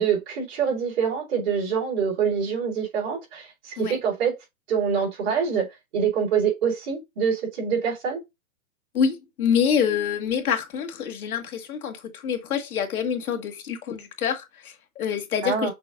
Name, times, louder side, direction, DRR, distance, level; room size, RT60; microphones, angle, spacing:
voice 1, 0.0-4.3 4.7-5.7 5.9-8.2 15.4-15.7, right 7 dB, 45° right, 3.1 m, -25 dB
voice 2, 8.9-15.7, left 7 dB, 85° left, 1.9 m, -26 dB
6.1 x 2.4 x 3.6 m
hypercardioid pair, 165°, 42 cm